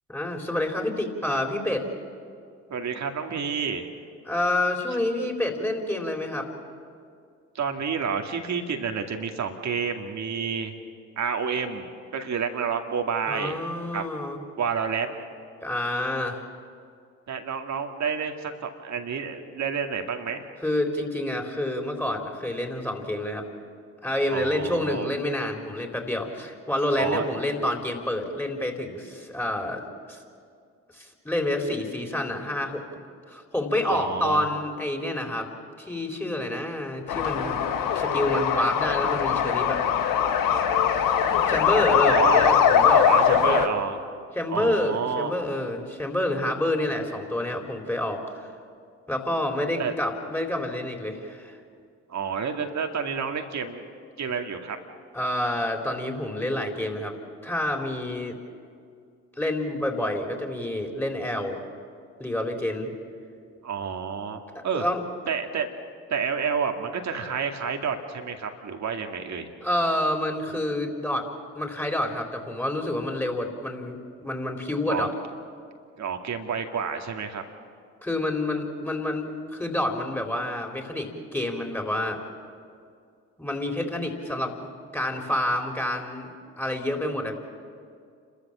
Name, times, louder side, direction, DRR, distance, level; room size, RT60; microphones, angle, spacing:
voice 1, 0.1-1.8 4.3-6.5 13.3-14.4 15.6-16.4 20.6-23.5 24.0-30.2 30.9-32.8 33.3-35.5 35.8-37.6 37.9-39.8 41.5-43.7 44.3-48.5 49.1-51.6 55.1-57.1 57.4-58.4 59.4-61.6 62.2-62.9 64.5-65.0 69.6-71.3 71.5-75.1 78.0-82.2 83.4-87.3, left 1 dB, 5° left, 2 dB, 4.1 m, -28 dB
voice 2, 2.7-3.9 7.5-10.7 11.2-11.9 12.1-13.6 13.9-14.0 14.6-15.2 17.3-20.5 24.3-25.1 27.0-27.4 33.8-34.5 42.1-42.5 43.0-44.0 44.5-45.3 49.8-49.9 52.1-53.9 54.2-54.8 63.6-64.8 65.3-65.7 66.1-69.5 74.9-75.1 76.0-77.4, right 6 dB, 50° right, 5 dB, 2.3 m, -29 dB
sound 1, 37.1-43.7, left 8 dB, 65° left, 1.5 m, -21 dB
30.0 x 13.5 x 7.5 m, 2.3 s
hypercardioid pair, 50°, 36 cm